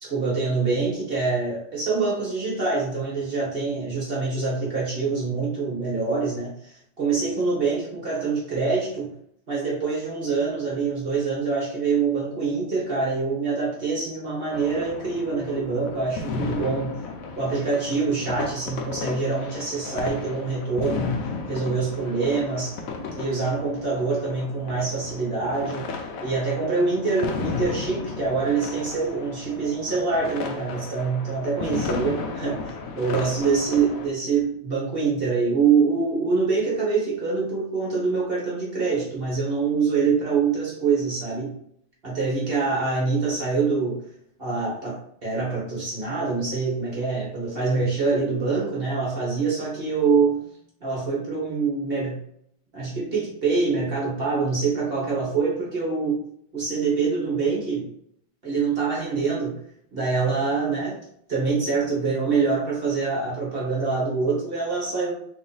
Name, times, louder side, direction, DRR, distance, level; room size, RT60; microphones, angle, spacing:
voice 1, 0.0-9.1 9.5-17.0 17.3-21.1 21.5-22.8 23.1-25.9 26.2-41.5 42.0-44.0 44.4-50.5 50.8-52.2 52.7-56.2 56.5-57.9 58.4-59.6 59.9-61.0 61.3-65.1, right 4 dB, 35° right, -5 dB, 1.2 m, -25 dB
sound 1, 14.5-34.1, left 4 dB, 80° left, 0.7 m, -34 dB
3.2 x 2.8 x 3.9 m, 0.69 s
omnidirectional pair, 2.1 m